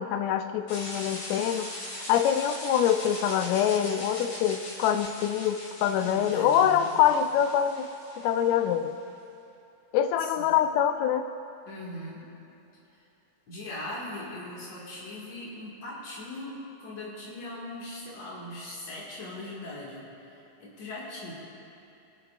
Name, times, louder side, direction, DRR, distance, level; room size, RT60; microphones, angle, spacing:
voice 1, 0.0-1.7 2.1-7.9 8.2-9.0 9.9-11.3, left 9 dB, 80° left, 9 dB, 1.8 m, -25 dB
sound 1, 0.7-8.7, left 1 dB, 45° left, 2.7 m, -40 dB
voice 2, 6.0-7.0 10.2-10.5 11.7-12.3 13.5-20.1 20.6-21.3, left 1 dB, 65° left, -5 dB, 3.1 m, -40 dB
22.5 x 8.2 x 2.5 m, 2.9 s
omnidirectional pair, 3.3 m